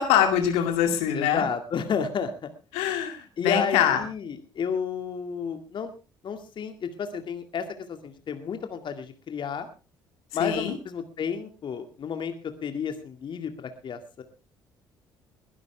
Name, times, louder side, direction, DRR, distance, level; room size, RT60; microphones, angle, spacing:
voice 1, 0.0-1.4 2.7-4.0 10.4-10.8, left 9 dB, 70° left, 6 dB, 2.3 m, -24 dB
voice 2, 1.1-2.5 3.4-5.9 6.2-9.7 10.3-14.2, left 6 dB, 50° left, 7 dB, 2.2 m, -31 dB
21.5 x 12.0 x 3.4 m, 0.31 s
hypercardioid pair, 50°, 11 cm